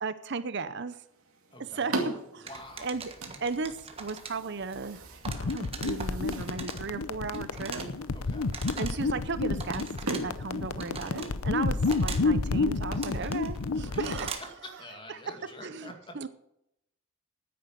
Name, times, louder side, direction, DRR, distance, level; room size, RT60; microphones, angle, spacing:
voice 1, 0.0-1.0 1.6-2.5 2.8-3.1 3.4-5.1 5.4-7.8 8.8-14.4 15.1-16.3, right 4 dB, 50° right, 13 dB, 0.7 m, -35 dB
sound 1, 0.9-12.0, right 2 dB, 75° right, 2.2 m, -41 dB
voice 2, 1.5-1.9 2.4-2.9 8.1-8.5 13.8-14.1 14.6-16.2, left 1 dB, 20° left, 4 dB, 2.2 m, -47 dB
sound 2, 2.5-14.6, right 5 dB, 25° right, 1.4 m, -43 dB
sound 3, 5.3-14.3, left 3 dB, 75° left, 0.7 m, -30 dB
9.8 x 9.5 x 8.6 m, 0.81 s
head